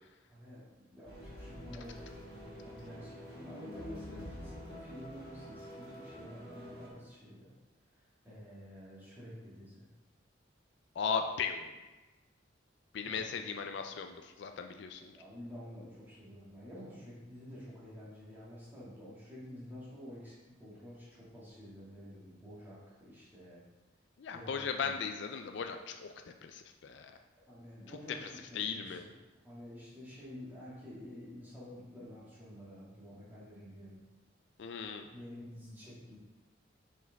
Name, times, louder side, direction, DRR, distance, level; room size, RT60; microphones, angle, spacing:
voice 1, 0.3-7.5 8.2-9.9 13.0-13.5 15.1-23.6 24.3-25.0 27.5-29.1 29.4-34.0 35.1-36.2, left 1 dB, 10° right, -9 dB, 2.0 m, -49 dB
sound 1, 1.0-6.9, equal, 50° right, 1.6 m, -48 dB
voice 2, 3.5-4.2 11.0-11.7 12.9-15.1 24.2-26.1 26.4-27.1 28.5-29.0 34.6-35.1, left 6 dB, 60° left, 6 dB, 0.4 m, -37 dB
5.9 x 5.0 x 3.4 m, 1.2 s
head